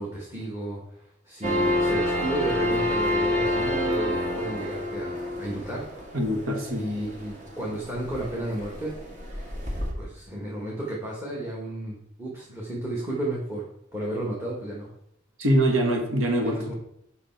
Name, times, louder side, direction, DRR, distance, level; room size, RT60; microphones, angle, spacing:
voice 1, 0.0-5.8 6.8-8.9 10.0-13.7 13.9-14.9 16.4-16.7, right 1 dB, 15° right, -4 dB, 1.4 m, -33 dB
sound 1, 1.4-9.9, left 1 dB, 40° right, 2.0 m, -28 dB
voice 2, 6.1-6.9 15.4-16.7, right 1 dB, 80° right, 3 dB, 1.4 m, -24 dB
8.0 x 5.6 x 4.5 m, 0.76 s
head